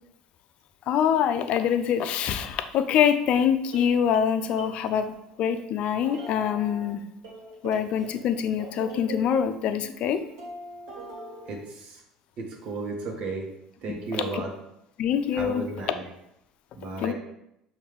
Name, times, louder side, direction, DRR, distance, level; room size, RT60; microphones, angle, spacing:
voice 1, 0.9-7.0 7.6-10.2 14.3-14.4 15.0-15.6 17.0-17.1, left 8 dB, 55° left, 10 dB, 0.4 m, -25 dB
sound 1, 3.7-5.4 6.0-6.9 7.2-11.5, right 2 dB, 75° right, 1.4 m, -42 dB
voice 2, 11.5-12.0 12.4-13.5 13.8-14.5 15.3-16.0 16.7-17.1, right 3 dB, 55° right, 0 dB, 1.1 m, -34 dB
5.7 x 2.6 x 3.4 m, 0.81 s
hypercardioid pair, 70°, 2 cm